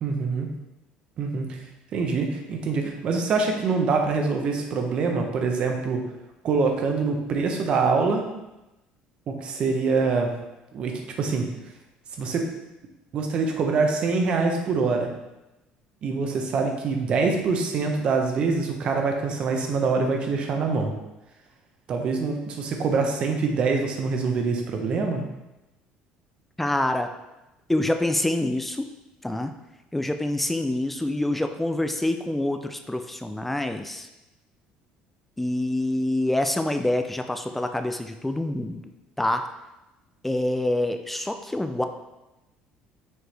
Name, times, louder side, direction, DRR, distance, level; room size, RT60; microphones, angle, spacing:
voice 1, 0.0-0.5 1.2-1.6 1.9-6.0 6.4-8.3 9.3-10.3 10.7-11.4 12.2-12.5 13.1-15.1 16.0-20.9 21.9-25.2, right 4 dB, 40° right, 3 dB, 0.9 m, -24 dB
voice 2, 26.6-27.1 27.7-28.9 29.2-29.5 29.9-34.1 35.4-38.8 39.2-39.5 40.2-41.8, left 1 dB, 5° left, 7 dB, 0.3 m, -26 dB
6.5 x 4.6 x 3.3 m, 0.97 s
cardioid pair, 160°, 3 cm